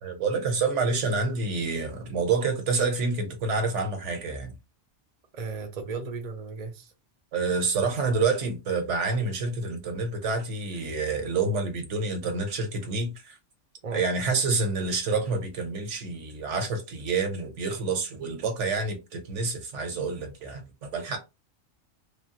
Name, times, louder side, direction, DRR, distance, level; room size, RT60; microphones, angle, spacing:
voice 1, 0.0-4.5 7.3-13.4 13.9-21.2, right 4 dB, 75° right, 1.1 m, -28 dB
voice 2, 5.3-6.9 13.8-14.0, right 4 dB, 40° right, 0.6 m, -35 dB
3.4 x 2.0 x 2.8 m
omnidirectional pair, 1.2 m